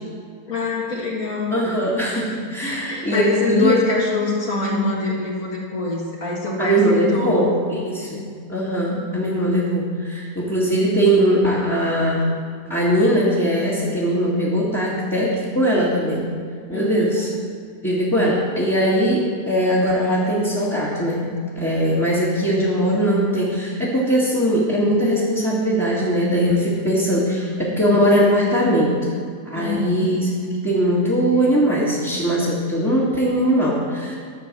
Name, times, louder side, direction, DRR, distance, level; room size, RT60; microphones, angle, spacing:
voice 1, 0.5-1.5 2.6-7.6 8.1-8.2 16.7-17.2 29.5-30.1, left 3 dB, 55° left, -4 dB, 2.3 m, -24 dB
voice 2, 1.5-3.8 6.6-12.3 12.7-16.3 16.7-17.3 17.8-21.3 21.6-28.9 29.5-30.3 30.6-34.2, equal, 5° left, -9 dB, 1.7 m, -20 dB
11.5 x 6.1 x 7.4 m, 2.2 s
omnidirectional pair, 1.9 m